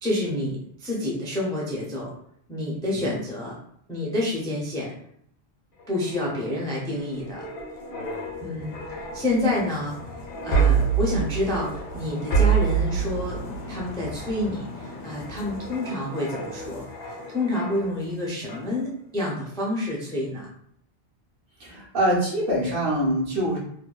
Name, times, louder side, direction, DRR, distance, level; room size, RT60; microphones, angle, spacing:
voice 1, 0.0-2.1 2.5-3.6 3.9-4.9 5.9-7.5 8.4-8.8 9.1-10.1 10.4-16.8 17.3-20.5, left 1 dB, 5° left, -4 dB, 0.3 m, -28 dB
sound 1, 5.8-18.1 18.5-18.7, right 5 dB, 75° left, 0.9 m, -28 dB
voice 2, 21.6-23.6, right 1 dB, 60° right, -4 dB, 0.9 m, -24 dB
2.6 x 2.2 x 2.3 m, 0.66 s
omnidirectional pair, 1.0 m